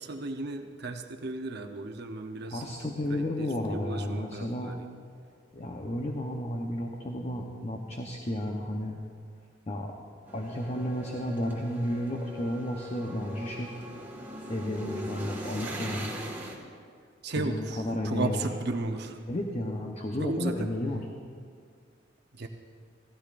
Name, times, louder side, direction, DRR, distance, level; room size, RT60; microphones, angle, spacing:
voice 1, 0.0-4.9 17.2-19.2 20.2-20.7 22.3-22.5, right 2 dB, 60° right, 5 dB, 0.8 m, -35 dB
voice 2, 2.5-4.8 5.5-9.0 9.7-9.9 10.3-13.8 14.5-16.1 17.3-18.4 19.3-21.0 22.4-22.5, left 1 dB, 35° left, 1 dB, 0.8 m, -32 dB
sound 1, 10.3-16.6, right 1 dB, 10° right, 1.7 m, -40 dB
16.5 x 15.5 x 2.5 m, 2.1 s
head